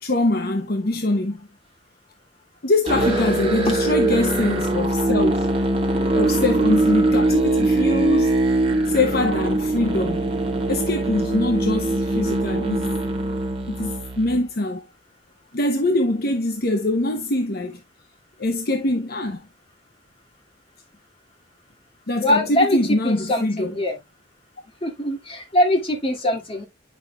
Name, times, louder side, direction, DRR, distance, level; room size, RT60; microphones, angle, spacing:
voice 1, 0.0-1.4 2.6-5.5 6.1-8.5 8.9-10.2 10.7-12.9 13.7-14.8 15.5-17.8 18.4-19.4 22.1-23.8, left 2 dB, 50° left, 0.8 m, -23 dB
Musical instrument, 2.9-14.5, right 2 dB, 30° right, 1.7 m, -22 dB
voice 2, 22.2-24.0 24.8-26.6, left 1 dB, 30° left, 2.3 m, -22 dB
9.4 x 6.3 x 2.3 m
head